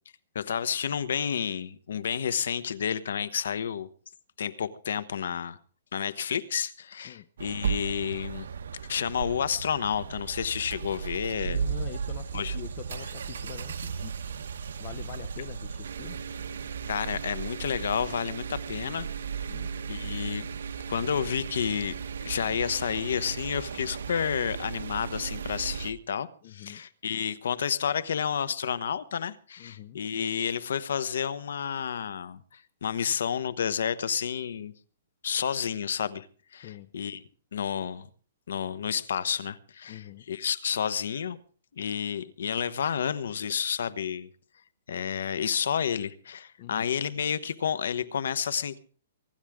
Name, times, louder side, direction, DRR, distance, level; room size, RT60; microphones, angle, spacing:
voice 1, 0.3-3.9 4.4-5.6 5.9-8.5 8.9-11.6 12.3-12.5 16.9-19.1 19.9-20.4 20.9-34.7 35.2-36.3 36.5-37.2 37.5-38.1 38.5-41.4 41.8-44.3 44.9-48.8, left 7 dB, 75° left, 1.1 m, -30 dB
sound 1, 7.4-25.9, right 6 dB, 85° right, 0.9 m, -35 dB
voice 2, 11.4-14.1 14.8-16.2 19.5-19.7 26.4-26.8 29.6-30.0 36.6-36.9 39.9-40.2 46.6-46.8, left 14 dB, 35° left, 0.7 m, -44 dB
24.0 x 11.5 x 3.7 m
hypercardioid pair, 165°, 0 cm